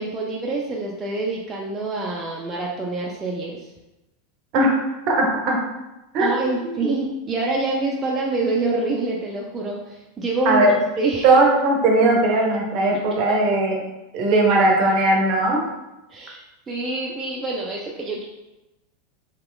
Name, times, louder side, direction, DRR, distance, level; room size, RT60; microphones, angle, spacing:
voice 1, 0.0-3.7 6.2-11.4 16.1-18.2, right 2 dB, 25° right, -3 dB, 0.4 m, -26 dB
voice 2, 5.1-5.6 6.1-6.3 6.6-6.9 10.5-10.7 11.2-13.8 14.1-15.7, right 2 dB, 50° right, 0 dB, 0.7 m, -18 dB
3.0 x 2.9 x 2.3 m, 1.0 s
hypercardioid pair, 95°, 0 cm